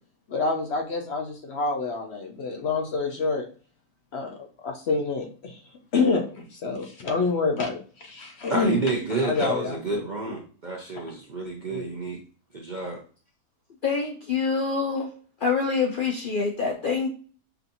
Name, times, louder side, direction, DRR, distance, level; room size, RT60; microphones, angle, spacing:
voice 1, 0.3-3.4 4.1-5.6 5.9-8.8 9.2-9.8 11.0-11.1 11.7-11.9, left 4 dB, 55° left, 0.8 m, -27 dB
voice 2, 8.5-12.2 12.5-13.0, right 3 dB, 50° right, 0.5 m, -29 dB
voice 3, 13.8-15.1 15.4-17.1, left 5 dB, 80° left, 0.4 m, -25 dB
5.6 x 2.7 x 2.6 m
omnidirectional pair, 1.6 m